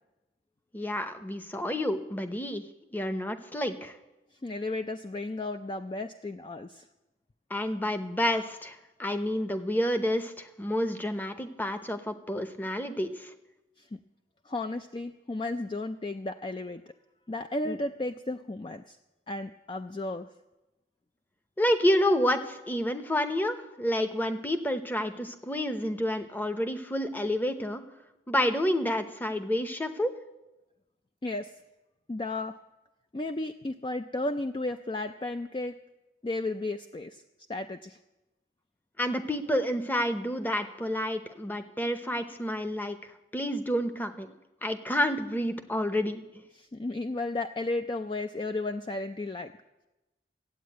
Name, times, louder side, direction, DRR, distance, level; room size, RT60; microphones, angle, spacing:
voice 1, 0.7-2.6 2.9-4.0 7.5-13.3 17.7-17.8 21.6-27.8 28.3-30.1 39.0-43.0 43.3-44.3 44.6-46.2, equal, 10° left, 9 dB, 0.8 m, -29 dB
voice 2, 4.4-6.9 13.8-14.0 14.4-16.8 17.3-19.0 19.3-20.3 31.2-31.5 32.1-32.6 33.1-35.8 36.2-37.2 37.5-38.0 46.5-49.5, left 2 dB, 25° left, 8 dB, 0.4 m, -34 dB
14.0 x 8.5 x 9.2 m, 1.0 s
head